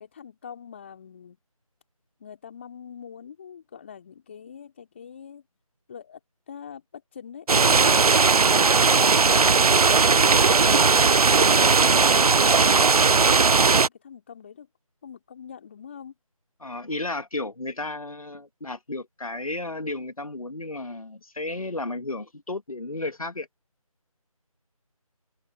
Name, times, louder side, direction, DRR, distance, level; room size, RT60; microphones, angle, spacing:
voice 1, 0.0-1.4 2.2-5.4 5.9-6.2 6.5-7.9 11.8-14.7 15.0-16.1, left 7 dB, 20° left, 2.6 m, -43 dB
sound 1, 7.5-13.9, right 4 dB, 80° right, 0.5 m, -18 dB
voice 2, 16.6-23.5, left 2 dB, 70° left, 1.9 m, -33 dB
open air
figure-of-eight pair, 165°, 19 cm